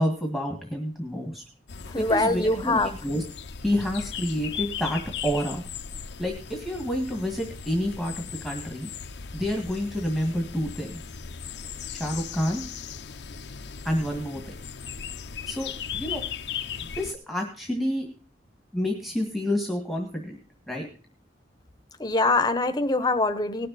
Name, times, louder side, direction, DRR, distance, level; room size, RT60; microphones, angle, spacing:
voice 1, 0.0-1.4 2.0-3.2 3.6-5.6 6.2-8.9 9.3-11.0 12.0-12.6 13.8-14.4 15.5-16.2 16.8-18.1 18.7-20.4 20.7-20.9, equal, ahead, 1 dB, 1.8 m, -29 dB
sound 1, 1.7-17.1, left 7 dB, 70° left, 0.7 m, -37 dB
voice 2, 1.9-3.0 22.0-23.7, left 2 dB, 25° left, 8 dB, 1.1 m, -23 dB
18.5 x 6.8 x 4.1 m, 0.36 s
head